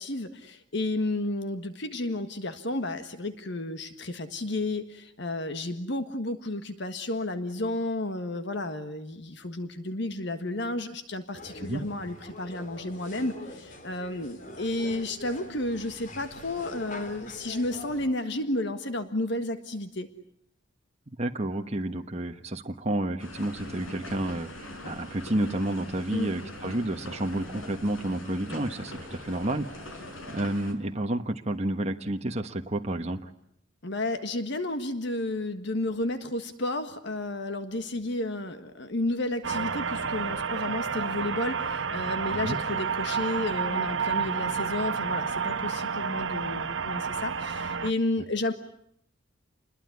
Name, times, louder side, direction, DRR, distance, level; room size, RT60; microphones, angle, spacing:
voice 1, 0.0-20.1 26.1-26.3 33.8-48.5, left 2 dB, 60° left, 9 dB, 1.6 m, -32 dB
sound 1, 11.4-18.1, left 1 dB, 40° left, 3.1 m, -44 dB
voice 2, 21.2-30.0 30.3-33.2 42.3-42.6, right 1 dB, 30° right, 4 dB, 1.2 m, -30 dB
sound 2, 23.2-30.7, left 1 dB, 90° left, 5.1 m, -42 dB
sound 3, 39.4-47.9, right 6 dB, 65° right, 1.1 m, -30 dB
28.5 x 21.5 x 9.5 m, 0.71 s
head